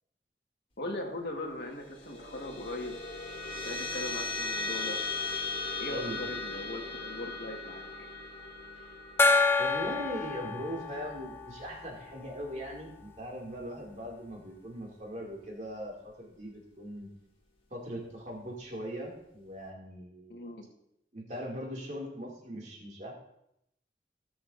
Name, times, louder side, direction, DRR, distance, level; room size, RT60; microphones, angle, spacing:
voice 1, 0.8-3.0 3.6-5.0 5.8-7.8 20.3-20.6, left 1 dB, 70° left, 2 dB, 1.6 m, -39 dB
sound 1, 1.7-12.5, left 3 dB, 30° left, 1.8 m, -38 dB
Gong, 9.2-12.5, left 3 dB, 15° left, 0.4 m, -28 dB
voice 2, 9.6-17.1 17.7-20.5 21.1-23.1, equal, 40° right, -2 dB, 2.5 m, -40 dB
18.0 x 7.0 x 2.6 m, 0.79 s
head